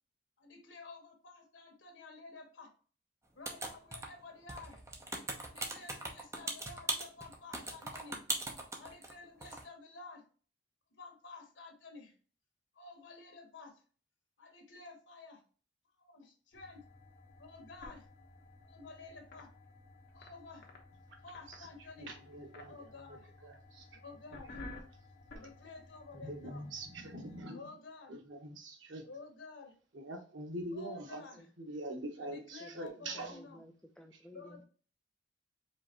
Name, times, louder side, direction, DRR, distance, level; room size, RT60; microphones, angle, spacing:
voice 1, 0.4-2.7 3.3-4.8 5.5-8.2 8.8-10.2 10.9-12.1 12.7-13.8 14.4-15.4 16.0-16.8 17.4-18.1 18.6-19.5 20.1-20.7 21.2-22.1 22.6-23.3 23.9-24.6 25.3-26.7 27.5-28.2 29.0-29.7 30.7-31.5 32.2-33.6 34.3-34.6, left 3 dB, 80° left, 4 dB, 1.4 m, -52 dB
sound 1, 3.5-4.2 4.5-9.1 9.4-9.6, right 2 dB, 15° right, 0.8 m, -39 dB
sound 2, 16.5-27.4, left 2 dB, 55° left, 1.2 m, -54 dB
voice 2, 22.0-22.8 23.1-23.2 23.4-24.0 25.4-25.5 26.1-27.7 28.1-29.1 29.9-31.2 31.6-33.4 34.1-34.2, right 1 dB, 90° right, 4 dB, 1.2 m, -44 dB
voice 3, 32.2-34.6, left 1 dB, 5° left, 3 dB, 0.3 m, -55 dB
5.0 x 3.4 x 2.9 m, 0.40 s
head